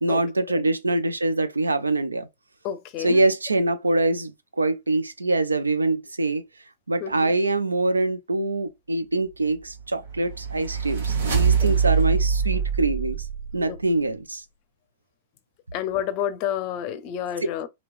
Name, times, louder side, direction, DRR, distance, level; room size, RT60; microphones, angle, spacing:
voice 1, 0.0-2.3 3.0-6.4 6.9-13.3 13.5-14.4, right 2 dB, 90° right, 0.4 m, -24 dB
voice 2, 2.6-3.2 7.0-7.3 11.6-11.9 13.7-13.8 15.7-17.7, left 10 dB, 40° left, 0.5 m, -30 dB
sound 1, 9.8-14.0, right 6 dB, 70° right, 1.2 m, -24 dB
3.0 x 2.8 x 2.4 m
figure-of-eight pair, 105°, 0 cm